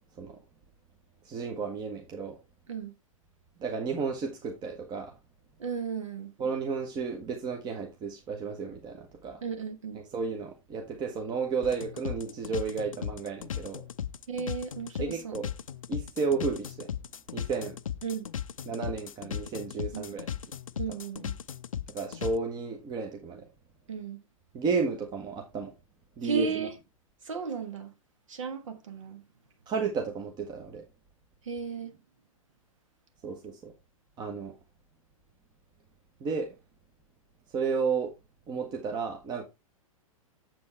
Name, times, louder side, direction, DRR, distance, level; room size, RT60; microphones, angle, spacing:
voice 1, 1.2-2.4 3.6-5.1 6.4-9.4 10.1-13.8 15.0-15.5 15.9-16.9 17.3-17.8 18.7-20.3 21.9-23.5 24.5-25.7 26.2-26.7 29.7-30.8 33.2-33.7 34.2-34.5 36.2-36.5 37.5-38.1 38.5-39.4, right 5 dB, 25° right, 1.2 m, -32 dB
voice 2, 5.6-6.3 9.4-10.0 14.3-15.4 18.0-18.3 19.9-20.1 20.7-21.3 23.9-24.2 26.2-26.7 27.2-27.9 28.3-29.2 31.4-32.0, right 5 dB, 60° right, 1.5 m, -34 dB
sound 1, 11.6-22.4, left 9 dB, 65° left, 0.5 m, -37 dB
7.6 x 7.5 x 3.3 m
figure-of-eight pair, 105°, 18 cm